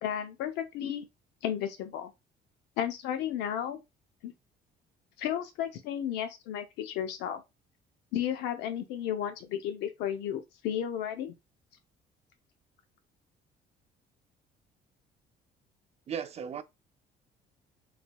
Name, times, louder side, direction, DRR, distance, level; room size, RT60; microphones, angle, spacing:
voice 1, 0.0-1.0 1.4-2.1 2.8-3.8 4.2-4.3 5.2-7.4 8.1-11.3, left 10 dB, 90° left, 0.6 m, -33 dB
voice 2, 16.1-16.6, right 7 dB, 40° right, 0.5 m, -35 dB
3.9 x 3.2 x 2.2 m
cardioid pair, 110°, 17 cm